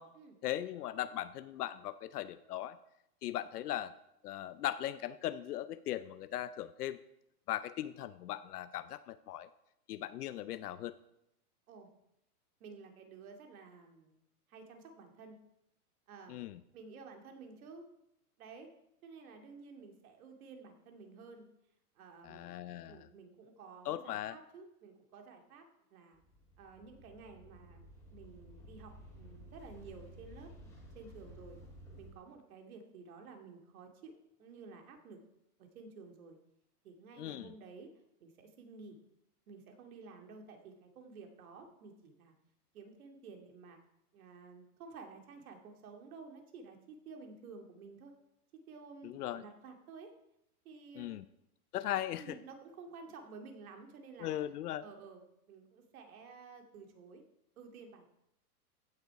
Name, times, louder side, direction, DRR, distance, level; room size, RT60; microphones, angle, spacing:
voice 1, 0.4-2.8 3.2-3.9 4.2-7.0 7.5-9.5 9.9-10.9 16.3-16.6 22.2-23.0 23.8-24.4 37.2-37.5 49.0-49.4 51.0-51.2 51.7-52.4 54.2-54.8, left 13 dB, 80° left, 13 dB, 0.7 m, -38 dB
voice 2, 12.6-14.1 14.5-15.4 16.1-16.4 16.7-17.9 18.4-18.7 19.0-21.5 21.9-25.7 25.9-26.2 26.6-30.7 30.9-31.6 32.0-35.2 35.6-36.4 36.8-37.9 38.2-39.0 39.5-42.3 42.7-43.8 44.1-48.1 48.7-50.1 50.6-51.2 51.9-54.3 54.8-55.2 55.5-57.2 57.6-58.1, right 4 dB, 65° right, 4 dB, 2.4 m, -52 dB
sound 1, 26.1-32.1, equal, 5° left, 2.8 m, -54 dB
15.5 x 6.8 x 4.8 m, 0.82 s
supercardioid pair, 165°, 46 cm